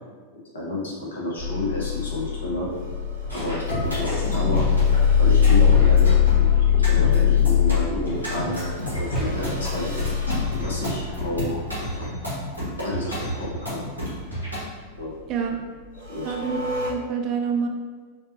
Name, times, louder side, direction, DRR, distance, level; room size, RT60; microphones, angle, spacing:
voice 1, 0.3-2.7 3.3-4.7 5.2-6.6 6.8-8.6 9.0-9.9 10.6-11.6 11.9-12.1 12.8-13.8 15.0-15.1 16.1-16.4, left 1 dB, 65° left, -5 dB, 1.0 m, -30 dB
sound 1, 1.4-11.8 12.2-12.3 12.7-13.1 14.2-14.6 15.0-15.6 15.9-16.9, left 8 dB, 70° right, 0.9 m, -22 dB
sound 2, 3.2-14.6, equal, 85° left, 1.3 m, -30 dB
Percussion, 9.2-13.9, right 1 dB, ahead, 1.2 m, -44 dB
voice 2, 15.3-15.6 16.2-17.7, right 6 dB, 35° right, 3 dB, 0.4 m, -27 dB
4.6 x 2.5 x 2.6 m, 1.5 s
figure-of-eight pair, 90°, 0 cm